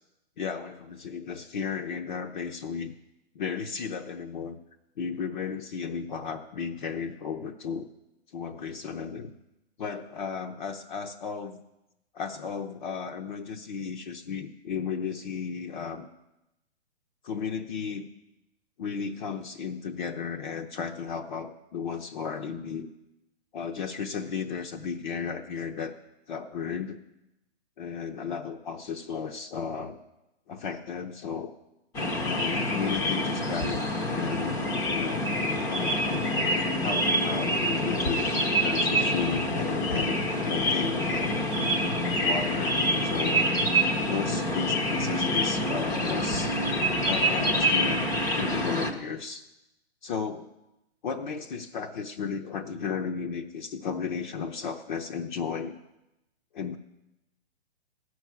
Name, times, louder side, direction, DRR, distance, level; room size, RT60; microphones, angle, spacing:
voice 1, 0.4-2.9 3.3-4.6 5.0-7.9 8.3-9.3 9.8-11.6 12.1-16.1 17.2-18.1 18.8-22.9 23.5-26.0 26.3-27.0 27.8-30.0 30.5-31.5 32.2-34.6 34.9-35.3 35.7-41.4 42.2-43.6 44.1-46.6 47.0-49.5 50.0-50.5 51.0-55.7 56.5-56.8, left 6 dB, 45° left, 3 dB, 0.9 m, -34 dB
sound 1, 31.9-48.9, equal, 10° left, 0.7 m, -26 dB
14.5 x 6.3 x 9.4 m, 0.94 s
hypercardioid pair, 150°, 32 cm